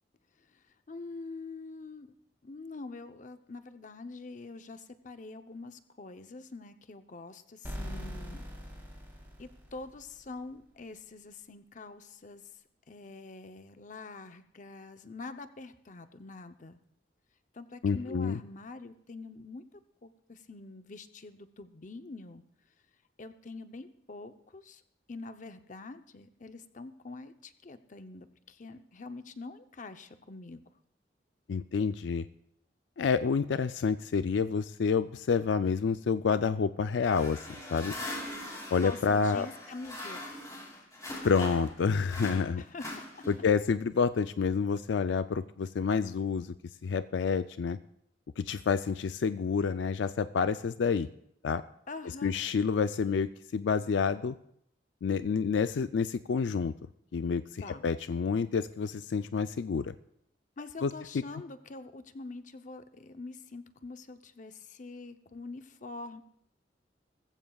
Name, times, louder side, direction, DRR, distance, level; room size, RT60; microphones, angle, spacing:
voice 1, 0.5-2.1 2.4-8.4 9.4-16.8 17.5-22.4 23.2-24.8 25.1-30.6 38.8-40.2 42.6-43.2 51.9-52.3 57.6-57.9 60.6-66.2, left 3 dB, 45° left, 9 dB, 0.7 m, -45 dB
sound 1, 7.6-10.4, equal, 10° right, 3.2 m, -42 dB
voice 2, 17.8-18.4 31.5-32.3 33.0-37.4 37.7-37.9 38.7-39.5 41.2-42.6 43.3-46.5 46.8-47.8 48.4-51.1 51.4-51.6 52.2-54.4 55.0-56.7 57.1-59.9 60.8-60.9, left 5 dB, 80° left, 12 dB, 0.4 m, -28 dB
sound 2, 37.0-41.8 42.1-43.5, left 1 dB, 20° left, 3.7 m, -41 dB
20.0 x 15.0 x 2.3 m, 0.72 s
head